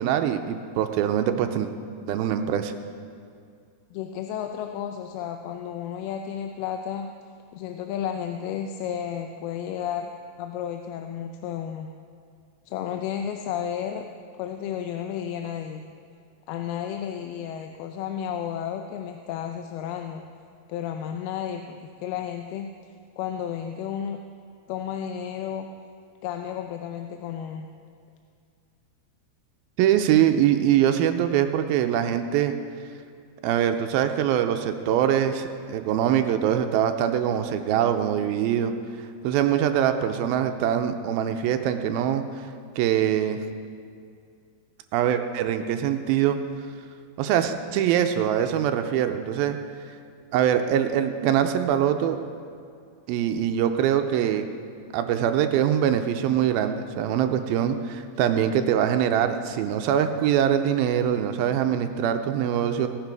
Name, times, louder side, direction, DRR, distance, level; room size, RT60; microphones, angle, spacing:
voice 1, 0.0-1.7 2.1-2.7 29.8-32.5 33.4-38.7 39.2-42.2 42.8-43.4 44.9-46.4 47.2-49.6 50.3-52.2 53.1-54.5 54.9-62.9, right 10 dB, 85° right, 7 dB, 2.4 m, -23 dB
voice 2, 3.9-7.1 7.5-10.1 10.4-11.9 12.7-14.1 14.4-15.8 16.5-20.2 20.7-24.2 24.7-25.7 26.2-27.7, left 9 dB, 85° left, 5 dB, 2.6 m, -32 dB
17.0 x 10.5 x 4.7 m, 2.3 s
omnidirectional pair, 4.4 m